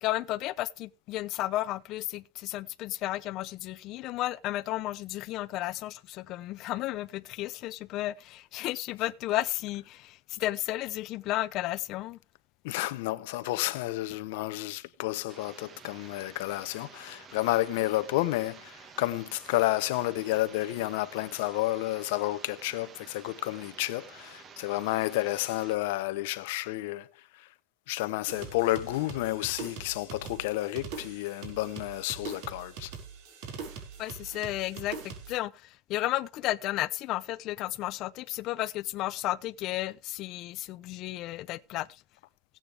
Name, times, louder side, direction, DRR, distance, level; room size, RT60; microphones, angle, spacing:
voice 1, 0.0-12.2 34.0-42.0, left 16 dB, 50° left, 0.8 m, -33 dB
voice 2, 12.6-27.1 27.3-27.5 27.9-32.9, left 17 dB, 75° left, 0.9 m, -31 dB
sound 1, 15.3-25.8, right 6 dB, 30° right, 1.7 m, -51 dB
sound 2, 28.3-35.4, right 5 dB, 70° right, 5.2 m, -43 dB
17.0 x 8.9 x 3.5 m
supercardioid pair, 135°, 0 cm